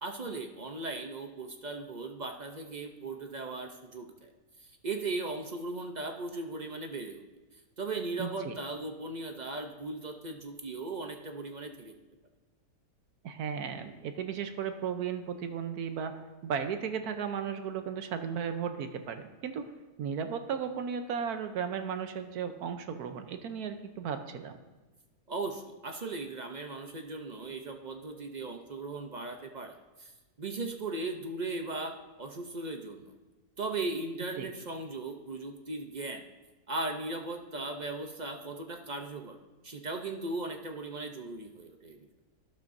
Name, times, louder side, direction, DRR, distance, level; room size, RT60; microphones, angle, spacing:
voice 1, 0.0-4.3 4.6-7.2 7.5-11.9 25.3-30.1 30.4-33.1 33.6-36.3 36.7-39.4 39.6-42.1, right 3 dB, 45° right, 4 dB, 0.6 m, -38 dB
voice 2, 8.2-8.6 13.2-19.7 20.0-24.5 34.4-34.5, right 7 dB, 85° right, 8 dB, 1.3 m, -35 dB
12.5 x 11.5 x 2.6 m, 1.2 s
omnidirectional pair, 1.6 m